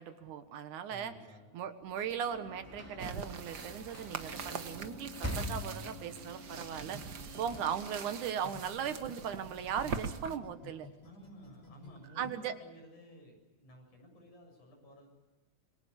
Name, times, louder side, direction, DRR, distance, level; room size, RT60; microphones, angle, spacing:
voice 1, 0.0-1.1 1.5-10.9 12.2-12.5, right 8 dB, 75° right, 9 dB, 2.8 m, -38 dB
voice 2, 0.9-1.5 11.0-15.1, equal, 70° left, 3 dB, 8.6 m, -54 dB
Sliding door / Slam, 1.8-8.8, equal, 5° left, 2.9 m, -45 dB
sound 1, 3.0-10.4, right 6 dB, 55° right, 1.1 m, -43 dB
sound 2, 6.5-9.1 9.4-12.3, left 4 dB, 45° left, 6.5 m, -53 dB
27.5 x 23.0 x 7.1 m, 1.2 s
omnidirectional pair, 3.6 m